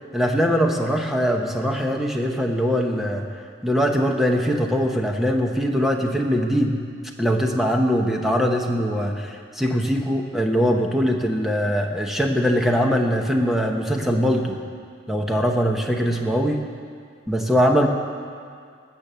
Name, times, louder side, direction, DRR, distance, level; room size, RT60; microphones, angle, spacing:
voice 1, 0.1-3.3 3.6-6.7 7.2-14.6 15.1-16.6 17.3-17.9, equal, ahead, 1 dB, 1.0 m, -21 dB
19.0 x 7.8 x 6.9 m, 2.1 s
head